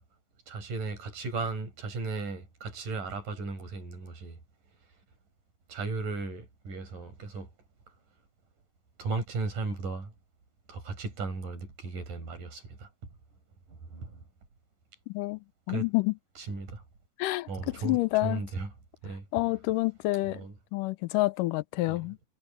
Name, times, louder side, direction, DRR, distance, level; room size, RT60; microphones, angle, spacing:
voice 1, 0.5-4.4 5.7-7.5 9.0-10.1 10.7-12.9 13.9-14.1 15.7-15.9 16.5-16.8 17.5-18.7 19.0-19.2 20.3-20.5 21.9-22.0, right 3 dB, 80° right, 7.1 m, -35 dB
voice 2, 15.1-15.4 15.7-16.1 17.2-18.4 19.3-20.4 20.7-22.2, left 20 dB, 90° left, 2.3 m, -28 dB
omnidirectional pair, 3.7 m